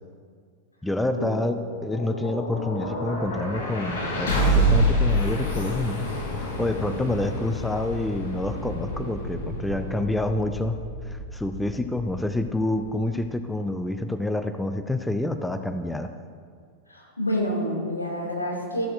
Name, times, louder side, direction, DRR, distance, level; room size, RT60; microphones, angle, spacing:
voice 1, 0.8-6.1 6.4-10.8 11.0-16.1, left 2 dB, 5° left, 8 dB, 0.5 m, -28 dB
sound 1, 1.5-13.4, equal, 60° left, 2.9 m, -28 dB
voice 2, 16.9-18.9, equal, 85° left, -2 dB, 2.3 m, -28 dB
13.5 x 12.0 x 2.6 m, 2.1 s
figure-of-eight pair, 90°, 0 cm